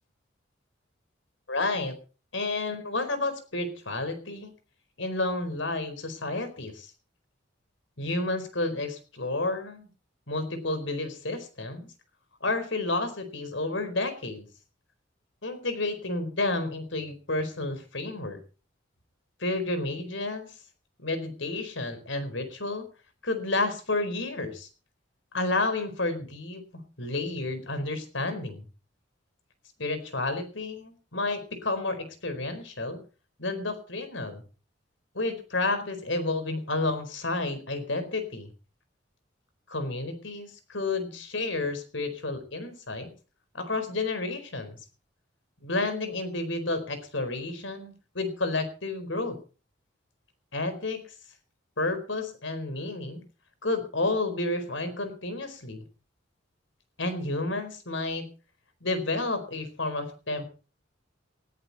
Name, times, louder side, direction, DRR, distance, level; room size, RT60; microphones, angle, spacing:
voice 1, 1.5-2.0 2.3-4.5 5.0-6.9 8.0-9.9 10.3-11.9 12.4-14.5 15.4-18.4 19.4-20.5 21.0-22.9 23.2-24.7 25.3-26.6 27.0-28.6 29.8-33.0 33.4-34.4 35.1-38.5 39.7-43.1 43.5-44.8 45.6-49.4 50.5-51.0 51.8-53.2 53.6-55.8 57.0-58.3 58.8-60.4, left 2 dB, 75° left, 10 dB, 4.4 m, -31 dB
19.5 x 14.0 x 4.2 m, 0.36 s
head